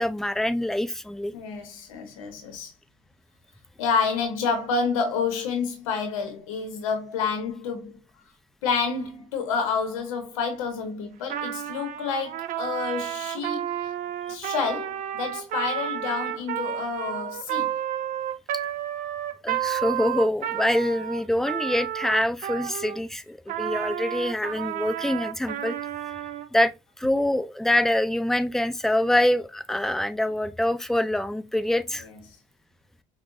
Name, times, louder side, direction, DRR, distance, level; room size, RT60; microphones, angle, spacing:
voice 1, 0.0-1.3 19.4-25.7 26.5-32.1, left 1 dB, ahead, 0.5 m, -25 dB
voice 2, 1.3-2.7 3.8-7.9 8.6-13.9 14.3-17.7 32.0-32.2, left 5 dB, 90° left, 0.7 m, -29 dB
Trumpet, 11.2-23.0 23.5-26.5, right 11 dB, 55° right, 0.6 m, -31 dB
5.9 x 2.1 x 2.5 m
hypercardioid pair, 70°, 17 cm